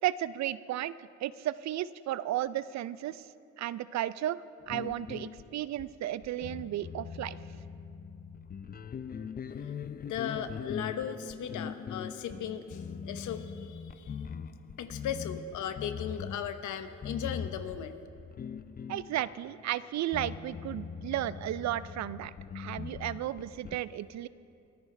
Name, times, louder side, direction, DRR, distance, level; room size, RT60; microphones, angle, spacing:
voice 1, 0.0-3.2 3.6-4.4 4.7-7.4 18.9-24.3, right 13 dB, 65° right, 17 dB, 0.5 m, -34 dB
sound 1, 4.6-19.6 20.1-23.8, left 6 dB, 30° left, 0.5 m, -41 dB
voice 2, 10.0-14.2 14.8-18.0, left 8 dB, 75° left, 9 dB, 1.0 m, -37 dB
23.0 x 14.0 x 3.3 m, 2.6 s
cardioid pair, 90°, 30 cm